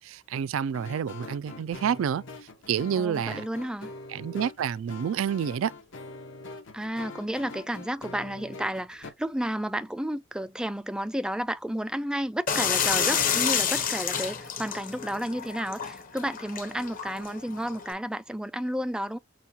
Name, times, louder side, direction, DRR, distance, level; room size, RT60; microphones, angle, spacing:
voice 1, 0.0-2.2 2.7-3.4 4.1-5.7, right 8 dB, 80° right, 0.3 m, -28 dB
sound 1, 0.7-9.1, left 3 dB, 65° left, 1.1 m, -44 dB
voice 2, 3.0-3.9 6.7-19.2, equal, 5° right, 0.3 m, -32 dB
sound 2, 12.5-17.9, left 7 dB, 45° left, 0.9 m, -29 dB
6.3 x 2.3 x 2.7 m
head